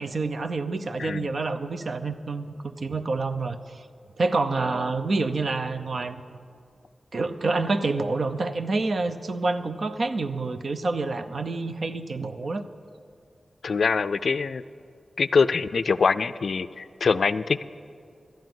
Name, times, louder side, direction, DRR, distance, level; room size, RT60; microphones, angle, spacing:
voice 1, 0.0-3.9 4.2-6.2 7.1-12.7, right 3 dB, 60° right, 10 dB, 0.7 m, -28 dB
voice 2, 1.0-1.3 13.6-14.6 15.2-17.6, left 5 dB, 70° left, 14 dB, 0.3 m, -24 dB
13.0 x 9.1 x 7.8 m, 2.3 s
wide cardioid pair, 90°, 0 cm